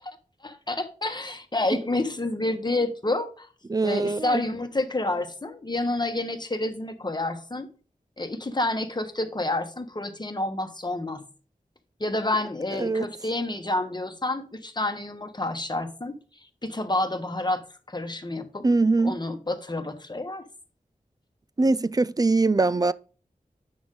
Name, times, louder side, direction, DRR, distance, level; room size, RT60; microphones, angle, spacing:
voice 1, 0.4-3.5 3.8-7.7 8.2-11.2 12.0-16.1 16.6-17.6 17.9-18.6 19.0-20.4, left 2 dB, 30° left, 1.2 m, -29 dB
voice 2, 3.7-4.4 12.8-13.1 18.6-19.2 21.6-22.9, right 3 dB, 25° right, 0.4 m, -22 dB
8.6 x 6.1 x 3.7 m
wide cardioid pair, 75°, 15 cm